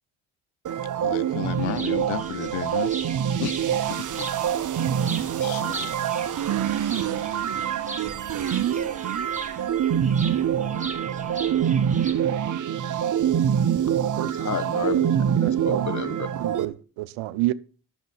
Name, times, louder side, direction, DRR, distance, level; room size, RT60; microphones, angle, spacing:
sound 1, 0.6-16.6, right 9 dB, 40° right, 0.9 m, -25 dB
voice 1, 1.0-2.9 3.4-4.3 5.4-5.9 6.8-7.4, left 18 dB, 70° left, 0.6 m, -34 dB
sound 2, 1.4-12.1, right 3 dB, 15° right, 1.7 m, -40 dB
voice 2, 14.2-16.3, left 6 dB, 35° left, 1.5 m, -32 dB
voice 3, 15.4-15.9 16.4-17.5, right 18 dB, 70° right, 0.8 m, -29 dB
10.0 x 6.8 x 5.6 m
hypercardioid pair, 60°, 50 cm